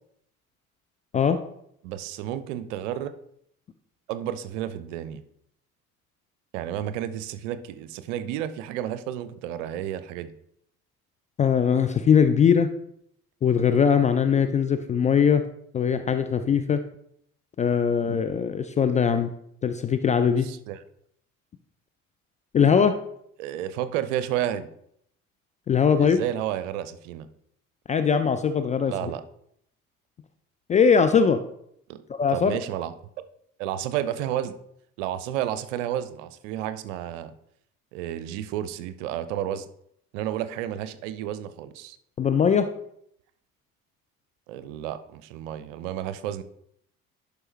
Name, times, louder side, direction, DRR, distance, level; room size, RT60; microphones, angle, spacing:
voice 1, 1.8-3.1 4.1-5.2 6.5-10.3 20.4-20.8 23.4-24.7 26.0-27.3 28.9-29.2 31.9-32.0 32.3-32.9 33.6-34.6 35.0-37.3 37.9-39.7 40.1-42.0 44.5-46.4, right 11 dB, 60° right, 12 dB, 0.7 m, -31 dB
voice 2, 11.4-12.7 13.4-15.4 15.7-16.8 17.6-19.3 19.6-20.5 22.5-22.9 25.7-26.2 27.9-29.1 30.7-31.4 32.1-32.6 42.2-42.7, left 7 dB, 20° left, 8 dB, 0.4 m, -21 dB
11.0 x 5.0 x 3.2 m, 0.72 s
figure-of-eight pair, 55°, 43 cm